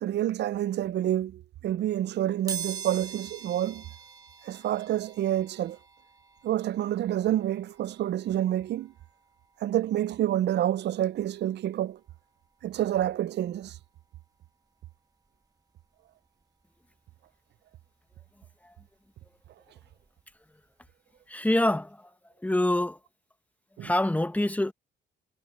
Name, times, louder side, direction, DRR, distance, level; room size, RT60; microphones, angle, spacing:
voice 1, 0.0-3.8 4.5-5.8 6.4-8.9 9.6-12.0 12.6-13.7 23.8-23.9, right 12 dB, 60° right, 0.5 m, -28 dB
sound 1, 2.5-13.1 13.6-13.7 14.9-15.0 15.2-17.3 17.7-20.3 20.7-20.9 21.2-21.3, right 7 dB, 20° right, 1.5 m, -45 dB
voice 2, 21.3-22.1 22.4-23.0 23.8-24.7, left 1 dB, 5° left, 1.1 m, -26 dB
cardioid pair, 90°, 20 cm